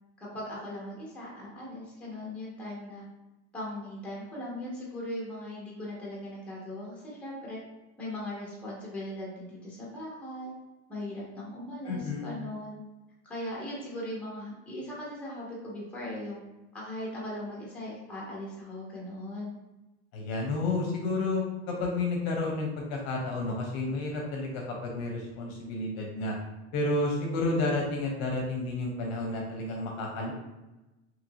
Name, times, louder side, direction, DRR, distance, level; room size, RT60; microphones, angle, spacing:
voice 1, 0.2-3.0 3.5-7.6 8.0-10.5 10.9-12.8 13.2-16.4 16.7-19.5, left 1 dB, 5° left, -5 dB, 0.8 m, -39 dB
voice 2, 11.8-12.3 20.1-26.4 26.7-30.3, left 2 dB, 50° left, 0 dB, 0.7 m, -31 dB
2.8 x 2.6 x 2.7 m, 1.0 s
supercardioid pair, 145°, 33 cm